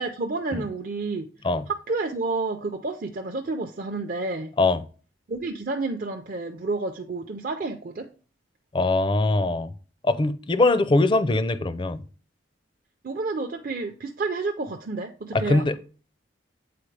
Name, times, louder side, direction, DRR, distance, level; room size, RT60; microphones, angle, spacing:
voice 1, 0.0-1.3 1.7-4.5 5.3-8.1 13.0-15.7, right 3 dB, 45° right, 0.5 m, -30 dB
voice 2, 8.7-9.7 10.0-12.0 15.5-15.8, left 2 dB, 25° left, 0.4 m, -22 dB
8.6 x 4.2 x 3.3 m
head